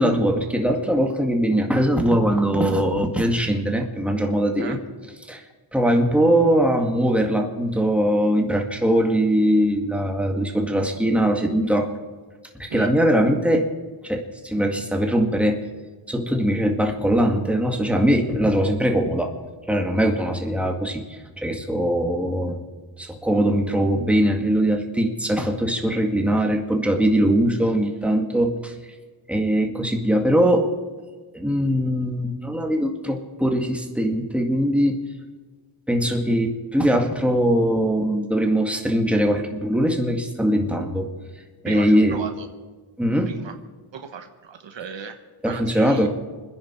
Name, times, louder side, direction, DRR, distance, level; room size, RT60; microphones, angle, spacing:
voice 1, 0.0-4.8 5.3-5.4 5.7-11.9 12.6-13.7 14.0-15.6 16.1-19.3 19.7-22.6 23.0-28.7 29.3-30.7 31.3-35.0 35.9-41.1 41.6-42.2 43.0-43.3 45.4-46.2, equal, 5° right, 2 dB, 2.0 m, -21 dB
voice 2, 41.6-42.5 43.3-43.5 43.9-45.2 45.4-46.1, right 6 dB, 70° right, 7 dB, 1.3 m, -35 dB
26.5 x 10.5 x 4.5 m, 1.4 s
wide cardioid pair, 95°, 47 cm